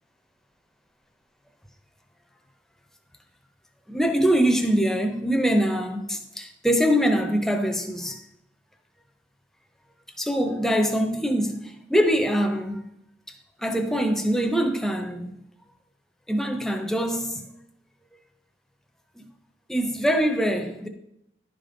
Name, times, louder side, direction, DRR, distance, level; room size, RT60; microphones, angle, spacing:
voice 1, 3.9-8.2 10.2-12.8 13.3-15.4 16.3-17.5 19.2-19.3 19.7-20.9, equal, 5° left, 0.6 m, -24 dB
11.0 x 5.2 x 3.8 m
head